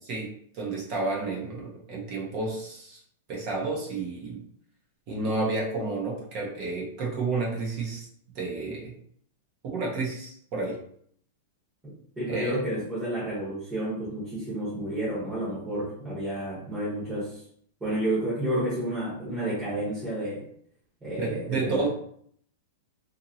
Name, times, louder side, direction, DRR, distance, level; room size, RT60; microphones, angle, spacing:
voice 1, 0.5-3.0 3.3-4.4 5.1-8.1 8.3-8.9 9.6-10.8 12.3-12.6 21.2-21.9, right 3 dB, 30° right, -2 dB, 0.6 m, -31 dB
voice 2, 12.2-17.4 17.8-20.4 21.0-21.9, right 1 dB, 10° right, -11 dB, 1.0 m, -30 dB
2.8 x 2.5 x 2.7 m, 0.64 s
supercardioid pair, 180°, 0 cm